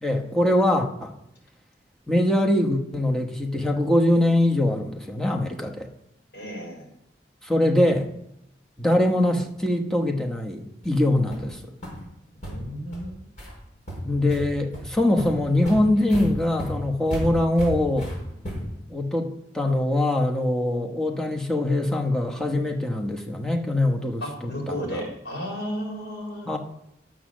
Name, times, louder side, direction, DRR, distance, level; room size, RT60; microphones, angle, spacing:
voice 1, 0.0-1.1 2.1-5.9 7.4-8.1 8.8-11.7 14.0-18.1 18.9-25.0 26.5-26.6, left 1 dB, 5° left, 1 dB, 1.1 m, -23 dB
voice 2, 6.3-6.8 12.4-13.3 24.2-26.5, equal, 70° left, 1 dB, 3.9 m, -33 dB
sound 1, 10.8-10.9 11.3-11.5 11.8-11.9 12.4-12.5 12.9-13.0 13.4-13.5 13.9-14.4 14.7-14.8 15.2-18.8, equal, 45° left, 5.4 m, -33 dB
11.0 x 7.5 x 6.3 m, 0.81 s
head